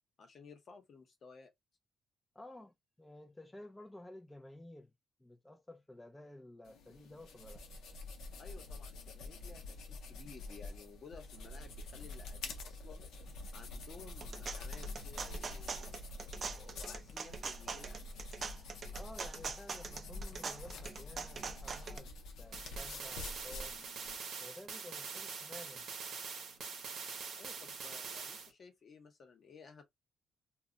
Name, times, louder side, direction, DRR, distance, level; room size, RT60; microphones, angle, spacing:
voice 1, 0.2-1.5 8.4-13.0 13.5-18.2 27.3-29.8, left 5 dB, 55° left, 0.9 m, -56 dB
voice 2, 2.3-4.9 5.2-7.6 18.9-23.8 24.4-25.9, left 1 dB, 10° left, 0.4 m, -53 dB
sound 1, 6.7-24.1, left 2 dB, 90° left, 0.6 m, -47 dB
sound 2, 14.0-22.0, right 5 dB, 45° right, 0.4 m, -43 dB
sound 3, 22.5-28.5, right 5 dB, 75° right, 0.7 m, -44 dB
2.3 x 2.1 x 3.7 m
cardioid pair, 95°, 0 cm